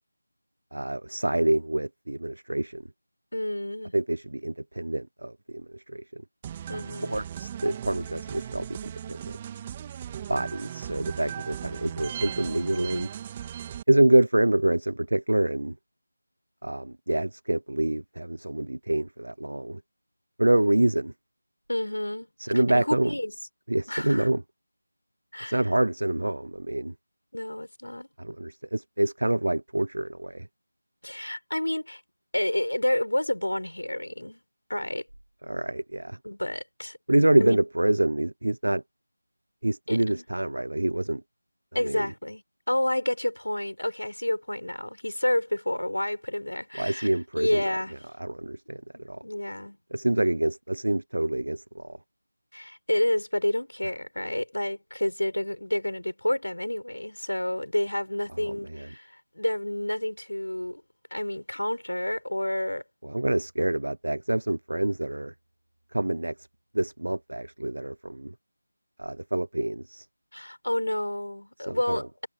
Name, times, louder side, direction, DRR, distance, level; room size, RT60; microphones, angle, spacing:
voice 1, 0.7-2.8 3.9-6.2 7.1-9.2 10.3-13.1 13.9-15.7 16.6-19.8 20.4-21.1 22.4-23.1 23.7-24.4 25.5-26.9 28.2-30.5 35.5-36.2 37.1-38.8 39.6-41.2 41.8-42.1 46.7-47.6 48.2-48.8 49.1-49.2 49.9-52.0 58.4-58.9 63.0-65.3 65.9-66.3 66.7-68.3 69.0-70.1 71.6-72.0, right 1 dB, 70° right, 0.6 m, -26 dB
voice 2, 3.3-3.9 6.7-7.3 21.7-22.3 22.7-23.3 23.9-24.3 25.3-25.6 27.3-28.1 31.0-32.0 32.3-34.4 34.7-35.0 36.2-37.0 37.4-37.6 39.9-40.2 41.7-42.4 42.7-47.9 48.9-49.8 52.5-59.1 59.4-60.8 61.1-62.8 70.3-72.3, left 1 dB, 75° left, 7.0 m, -29 dB
sound 1, 6.4-13.8, right 10 dB, 15° right, 2.8 m, -37 dB
figure-of-eight pair, 165°, 0 cm